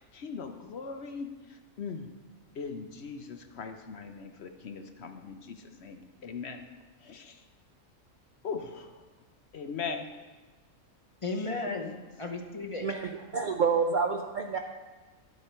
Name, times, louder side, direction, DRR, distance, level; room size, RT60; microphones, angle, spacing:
voice 1, 0.0-2.1 2.5-6.6 7.0-7.4 8.4-9.1 9.5-10.1 11.3-11.8, left 5 dB, 55° left, 6 dB, 0.9 m, -40 dB
voice 2, 11.2-12.9, left 3 dB, 30° left, 2 dB, 0.6 m, -35 dB
voice 3, 12.8-14.6, right 5 dB, 55° right, 4 dB, 0.5 m, -28 dB
10.5 x 8.1 x 4.4 m, 1.3 s
omnidirectional pair, 1.4 m